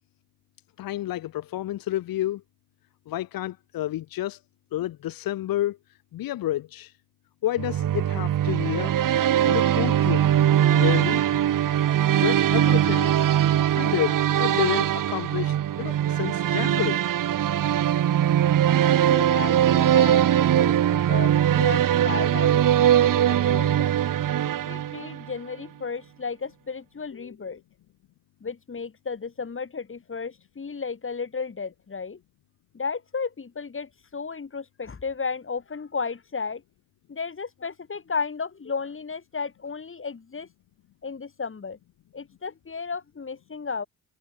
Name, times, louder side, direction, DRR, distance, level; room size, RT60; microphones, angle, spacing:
voice 1, 0.8-2.4 3.1-4.4 4.7-5.8 6.1-6.9 7.4-8.9 9.4-10.3 10.7-11.3 12.1-13.2 13.7-17.0 27.2-27.3, left 14 dB, 55° left, 2.5 m, -29 dB
sound 1, 7.6-25.3, right 11 dB, 50° right, 3.3 m, -21 dB
voice 2, 19.0-23.9 24.6-27.6 28.4-32.2 32.7-36.6 37.1-40.5 41.0-41.8 42.1-43.9, left 5 dB, 30° left, 5.1 m, -34 dB
figure-of-eight pair, 45°, 41 cm